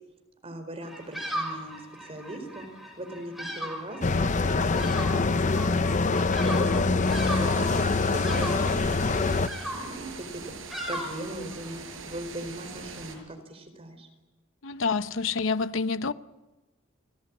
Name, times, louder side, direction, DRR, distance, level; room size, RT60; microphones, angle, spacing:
voice 1, 0.4-1.7 2.0-2.7 3.0-5.8 6.5-7.7 8.0-9.4 9.7-10.4 10.9-14.1, right 1 dB, 30° right, 4.6 m, -39 dB
Bird vocalization bird call bird song, 0.8-11.8, equal, ahead, 5.4 m, -38 dB
sound 1, 4.0-9.5, left 3 dB, 35° left, 0.7 m, -24 dB
sound 2, 7.1-13.2, right 4 dB, 80° right, 6.0 m, -42 dB
voice 2, 14.6-16.1, left 4 dB, 70° left, 0.9 m, -27 dB
28.5 x 17.0 x 8.6 m
head